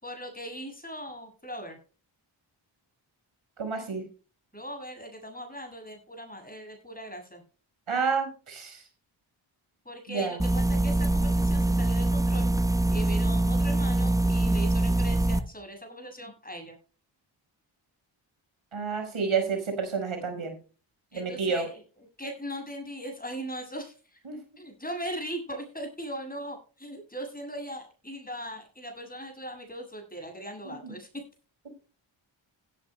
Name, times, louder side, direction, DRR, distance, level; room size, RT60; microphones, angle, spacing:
voice 1, 0.0-1.8 4.5-7.4 9.8-12.5 12.9-16.8 21.1-24.2 24.6-31.1, equal, 20° left, 4 dB, 7.5 m, -39 dB
voice 2, 3.6-4.0 7.9-8.8 10.1-10.4 18.7-20.6 21.1-21.6 24.3-24.4 30.7-30.9, right 5 dB, 85° right, 5 dB, 5.2 m, -30 dB
sound 1, 10.4-15.4, right 2 dB, 5° right, 1.0 m, -24 dB
16.5 x 14.0 x 2.2 m, 0.35 s
wide cardioid pair, 80°, 48 cm